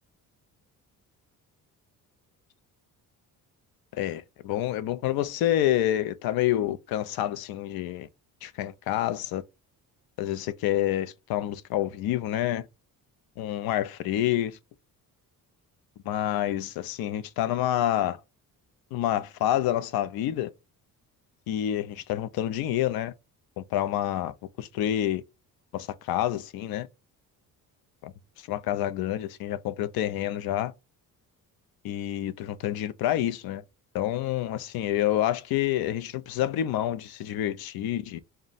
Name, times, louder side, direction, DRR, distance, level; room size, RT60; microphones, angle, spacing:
voice 1, 3.9-8.1 8.4-9.4 10.2-12.7 13.4-14.6 16.1-18.2 18.9-20.5 21.5-23.1 23.6-25.2 25.7-26.9 28.0-28.1 28.5-30.7 31.8-33.6 33.9-38.2, left 12 dB, 80° left, 0.5 m, -28 dB
3.7 x 2.2 x 3.9 m
cardioid pair, 160°, 36 cm